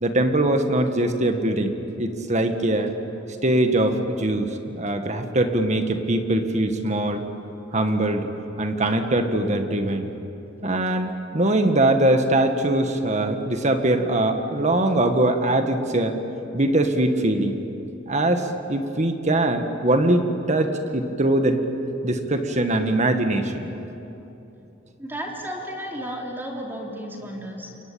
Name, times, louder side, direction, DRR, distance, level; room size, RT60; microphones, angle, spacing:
voice 1, 0.0-2.9 3.4-7.2 7.7-8.3 8.6-10.1 10.6-16.1 16.5-17.6 18.1-21.6 22.0-23.7, right 1 dB, 35° right, 6 dB, 1.7 m, -22 dB
voice 2, 25.0-27.7, equal, 10° right, -1 dB, 3.7 m, -33 dB
29.0 x 22.5 x 8.8 m, 2.9 s
head